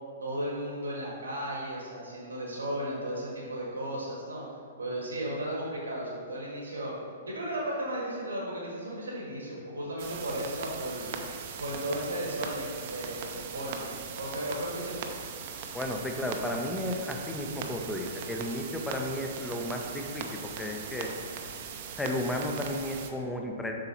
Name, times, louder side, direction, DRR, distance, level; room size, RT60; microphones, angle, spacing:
voice 1, 0.2-4.4 4.8-6.9 7.3-11.1 11.6-13.9 14.2-15.1, right 1 dB, 85° right, -4 dB, 1.4 m, -35 dB
sound 1, 10.0-23.1, right 6 dB, 45° right, 0.6 m, -40 dB
voice 2, 15.7-21.2 22.0-23.7, left 1 dB, 5° left, 2 dB, 0.6 m, -33 dB
7.7 x 5.7 x 2.9 m, 2.1 s
figure-of-eight pair, 110°, 0 cm